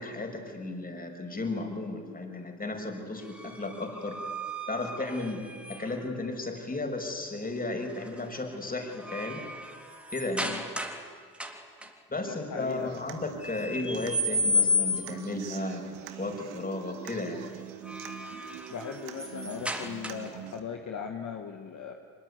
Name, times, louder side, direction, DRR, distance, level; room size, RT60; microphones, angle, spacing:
voice 1, 0.0-4.2 4.7-5.4 5.7-9.4 10.1-10.5 12.1-15.8 16.2-17.4, left 2 dB, 25° left, 4 dB, 5.9 m, -34 dB
sound 1, 3.2-6.1 7.9-8.2 8.6-11.1 11.3-11.9 13.4-15.3 17.6-20.5, left 2 dB, 5° right, 3.5 m, -33 dB
voice 2, 12.3-12.9 18.7-21.9, left 7 dB, 50° left, 4 dB, 2.1 m, -38 dB
Human voice / Acoustic guitar, 12.6-20.6, right 11 dB, 75° right, 2.0 m, -44 dB
24.0 x 21.5 x 9.8 m, 2.1 s
hypercardioid pair, 60°, 37 cm